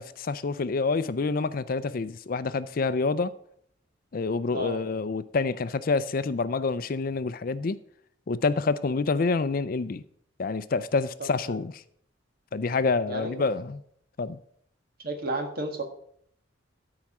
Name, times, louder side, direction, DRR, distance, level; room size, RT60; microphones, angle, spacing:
voice 1, 0.0-3.3 4.1-7.8 8.3-10.0 10.4-11.8 12.5-13.8 14.2-14.4, left 4 dB, 50° left, 0.4 m, -27 dB
voice 2, 11.2-11.6 13.1-13.3 15.0-15.8, right 1 dB, 55° right, 1.7 m, -32 dB
13.0 x 4.8 x 5.9 m
head